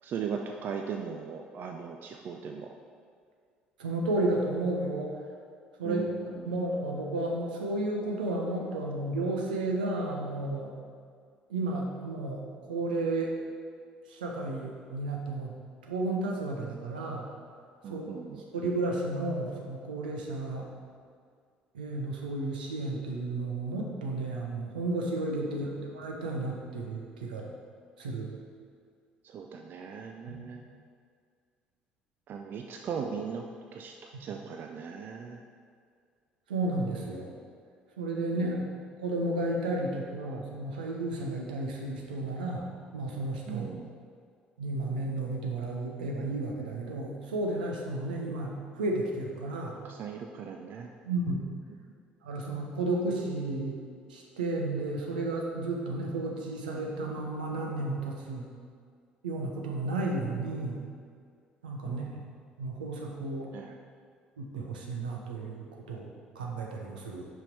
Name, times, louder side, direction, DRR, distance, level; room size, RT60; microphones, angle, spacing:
voice 1, 0.0-2.7 5.8-6.5 17.8-18.4 25.5-25.6 29.2-30.6 32.3-33.5 33.7-35.4 38.4-38.6 43.5-43.9 49.8-50.9 51.7-51.8 61.8-62.2 63.5-63.7, right 6 dB, 45° right, 3 dB, 0.5 m, -38 dB
voice 2, 3.8-5.2 5.8-10.8 11.5-13.3 14.1-15.5 15.9-17.3 17.9-18.0 18.5-20.7 21.7-27.5 28.0-28.3 30.3-30.5 36.5-37.3 38.0-38.6 39.0-43.7 44.6-49.8 51.0-51.4 52.2-53.8 54.1-58.5 59.2-60.8 61.6-62.3 62.6-63.5 64.4-67.3, right 2 dB, 75° right, -1 dB, 0.9 m, -32 dB
5.8 x 5.5 x 4.5 m, 2.1 s
figure-of-eight pair, 55°, 5 cm